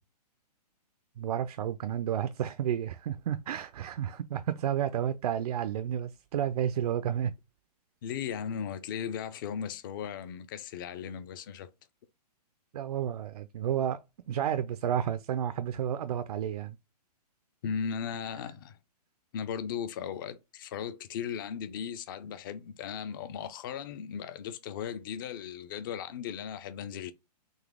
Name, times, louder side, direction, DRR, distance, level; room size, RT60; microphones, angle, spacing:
voice 1, 1.2-7.3 12.7-14.0 14.3-16.8, right 10 dB, 65° right, 0.4 m, -31 dB
voice 2, 8.0-11.7 17.6-18.8 19.3-27.1, left 7 dB, 30° left, 0.4 m, -37 dB
4.0 x 2.7 x 3.5 m
hypercardioid pair, 150°, 21 cm